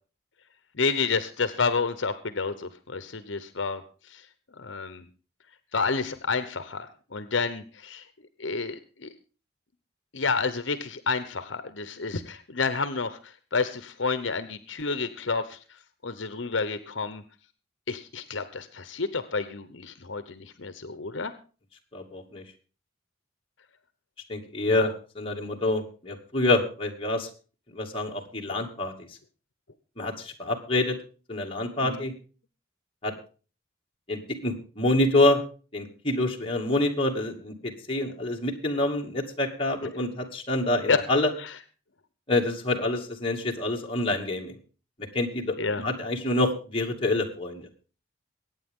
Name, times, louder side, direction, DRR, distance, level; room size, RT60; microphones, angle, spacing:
voice 1, 0.7-3.8 4.1-4.2 4.6-5.0 5.7-8.1 8.4-9.1 10.1-15.6 16.0-17.2 17.9-21.3 24.7-24.9 31.8-32.0 40.9-41.0 41.4-41.5 45.6-45.8, left 4 dB, 70° left, 11 dB, 1.0 m, -29 dB
voice 2, 21.9-22.4 24.3-27.3 27.7-28.9 30.0-31.0 31.3-32.1 33.0-33.1 34.1-35.4 35.7-41.3 42.3-44.6 45.1-47.7, left 2 dB, 30° left, 0 dB, 2.5 m, -27 dB
22.5 x 9.3 x 3.7 m, 0.36 s
head